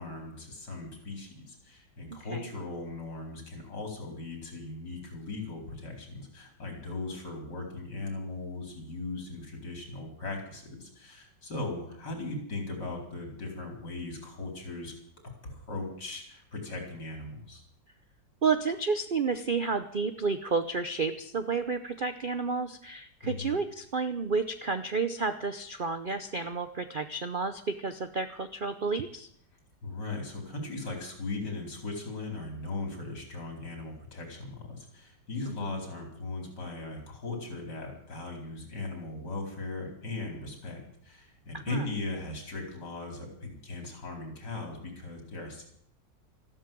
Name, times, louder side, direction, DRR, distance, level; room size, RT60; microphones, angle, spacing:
voice 1, 0.0-14.9 15.4-17.6 23.2-23.6 29.8-45.6, left 2 dB, 60° left, 2 dB, 4.9 m, -38 dB
voice 2, 18.4-29.3 35.5-35.7 41.5-41.8, right 4 dB, 55° right, 10 dB, 0.5 m, -31 dB
14.0 x 12.5 x 7.6 m, 0.65 s
omnidirectional pair, 2.0 m